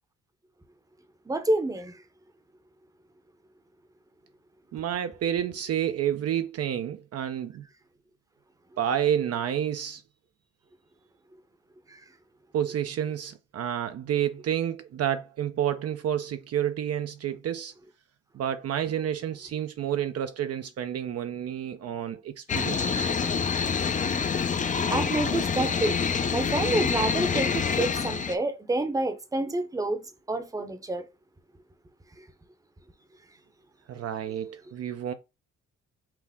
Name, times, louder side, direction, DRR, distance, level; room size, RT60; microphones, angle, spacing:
voice 1, 1.2-2.0 11.9-12.0 24.6-26.0 26.3-30.0 30.3-31.0 32.2-32.3, right 2 dB, 10° right, 0.7 m, -28 dB
voice 2, 4.7-7.7 8.8-10.0 12.5-17.7 18.3-23.1 24.0-24.1 33.9-35.1, right 10 dB, 55° right, 0.5 m, -29 dB
sound 1, 22.5-28.4, left 6 dB, 25° left, 0.5 m, -27 dB
5.9 x 2.0 x 3.5 m
cardioid pair, 90°, 30 cm